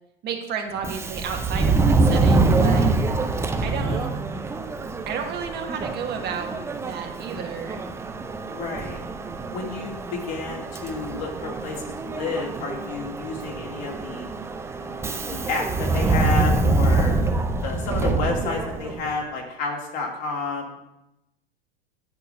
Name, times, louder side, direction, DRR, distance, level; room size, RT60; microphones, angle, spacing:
voice 1, 0.2-2.9 3.6-4.1 5.1-7.8, right 6 dB, 30° right, 3 dB, 1.3 m, -32 dB
Subway metro underground, 0.8-19.1, right 3 dB, 10° right, 0.5 m, -25 dB
voice 2, 8.5-9.0 9.5-14.3 14.8-17.2 17.6-21.0, left 4 dB, 50° left, 0 dB, 2.5 m, -31 dB
9.4 x 3.9 x 6.7 m, 0.86 s
hypercardioid pair, 105°, 31 cm